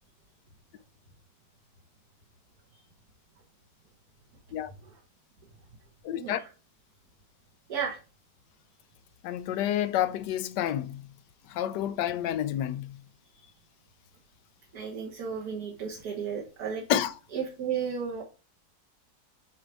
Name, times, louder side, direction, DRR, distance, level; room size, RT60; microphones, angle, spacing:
voice 1, 6.0-6.4 9.2-11.1 11.5-13.0 16.9-17.1, left 11 dB, 75° left, 1.2 m, -29 dB
voice 2, 14.7-16.8 17.3-18.2, right 7 dB, 60° right, 1.8 m, -33 dB
8.1 x 4.8 x 3.4 m
omnidirectional pair, 1.9 m